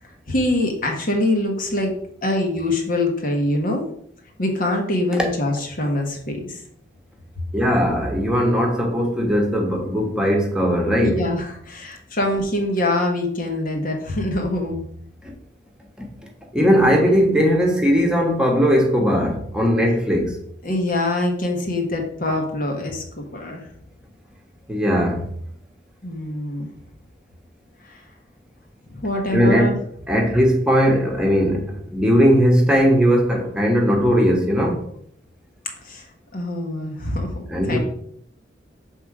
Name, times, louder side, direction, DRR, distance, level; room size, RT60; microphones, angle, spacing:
voice 1, 0.3-1.9 2.2-3.8 4.4-6.6 11.0-14.8 20.6-23.7 26.0-26.7 27.9-28.0 28.9-29.8 35.8-36.1 36.3-37.3 37.7-37.8, left 1 dB, 50° left, 1.3 m, -24 dB
voice 2, 7.5-11.2 15.2-15.3 16.0-16.1 16.5-20.4 24.7-25.2 29.3-29.7 30.1-34.8 37.5-37.8, equal, 5° right, 1.2 m, -18 dB
7.0 x 3.8 x 4.8 m
head